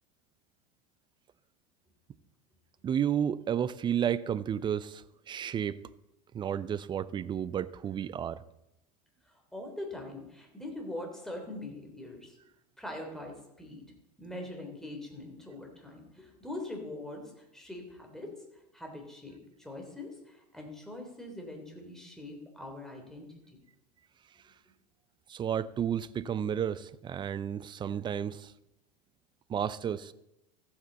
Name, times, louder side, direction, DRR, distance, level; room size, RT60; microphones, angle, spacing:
voice 1, 2.8-5.8 6.3-8.4 25.3-28.5 29.5-30.1, right 9 dB, 25° right, 17 dB, 0.5 m, -32 dB
voice 2, 9.2-12.4 12.8-13.8 14.2-18.4 18.7-23.6, left 1 dB, ahead, 1 dB, 3.1 m, -43 dB
15.0 x 8.7 x 4.0 m, 0.89 s
hypercardioid pair, 85°, 20 cm